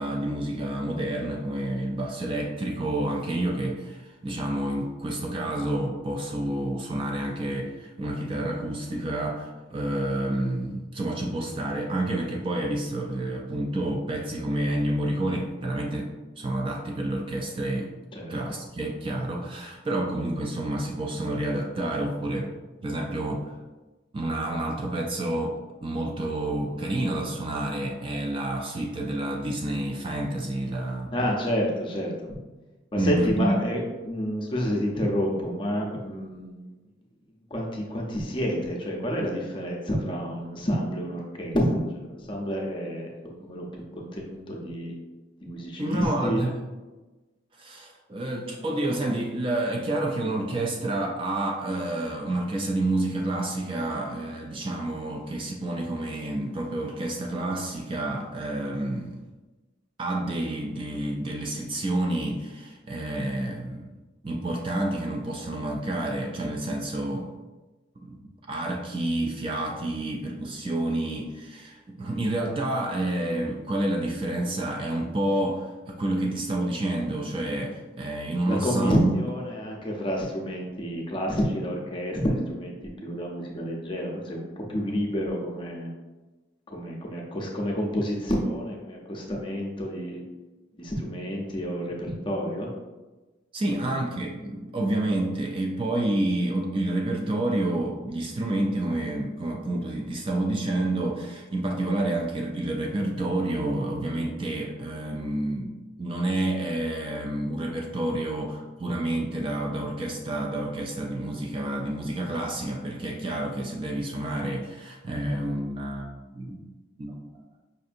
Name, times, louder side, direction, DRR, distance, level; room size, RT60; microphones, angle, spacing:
voice 1, 0.0-17.9 18.3-22.5 22.8-23.5 24.1-31.1 33.0-33.6 45.8-46.5 47.6-59.2 60.0-63.9 64.2-67.3 68.0-68.2 68.5-79.1 93.5-116.6 117.0-117.3, right 1 dB, 25° right, 1 dB, 0.3 m, -29 dB
voice 2, 31.1-32.1 32.9-36.6 37.5-43.1 43.4-43.7 44.0-45.0 45.4-46.4 78.4-82.7 83.0-85.9 86.7-90.2 90.8-92.7 93.7-94.0, equal, 25° left, -1 dB, 0.5 m, -29 dB
5.2 x 2.6 x 2.5 m, 1.2 s
head